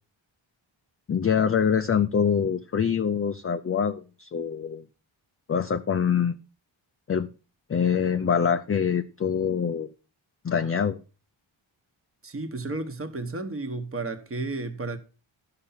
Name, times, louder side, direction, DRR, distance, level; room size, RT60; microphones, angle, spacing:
voice 1, 1.1-4.8 5.5-6.3 7.1-7.3 7.7-9.9 10.4-11.0, left 7 dB, 30° left, 0.4 m, -24 dB
voice 2, 12.2-15.0, right 3 dB, 25° right, 1.1 m, -32 dB
11.5 x 5.8 x 5.6 m
wide cardioid pair, 120°, 49 cm